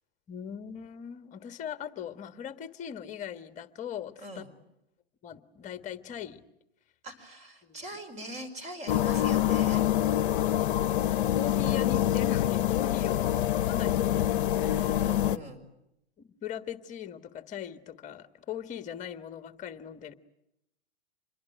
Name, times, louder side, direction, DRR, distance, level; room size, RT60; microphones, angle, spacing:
voice 1, 0.3-4.4 5.2-6.4 7.6-7.8 11.1-13.2 13.7-14.9 15.4-15.5 16.2-20.1, left 9 dB, 25° left, 11 dB, 1.6 m, -40 dB
voice 2, 4.2-4.5 7.0-9.8 13.0-13.2 14.8-15.6, right 1 dB, 20° right, 9 dB, 5.3 m, -42 dB
sound 1, 8.9-15.4, left 12 dB, 55° left, 0.9 m, -26 dB
27.0 x 22.0 x 9.2 m, 0.84 s
figure-of-eight pair, 110°, 32 cm